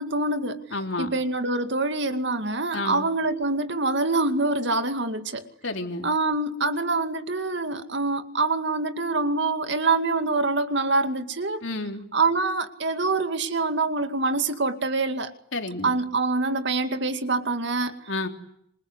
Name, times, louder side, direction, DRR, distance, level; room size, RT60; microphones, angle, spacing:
voice 1, 0.0-0.6 1.0-5.5 6.0-11.6 12.1-15.3 15.8-18.0, right 3 dB, 60° right, 2.3 m, -25 dB
voice 2, 0.7-1.1 2.7-3.1 5.6-6.0 11.6-12.0 15.5-15.9 18.1-18.3, left 2 dB, 65° left, 3.4 m, -30 dB
27.0 x 26.5 x 8.1 m
head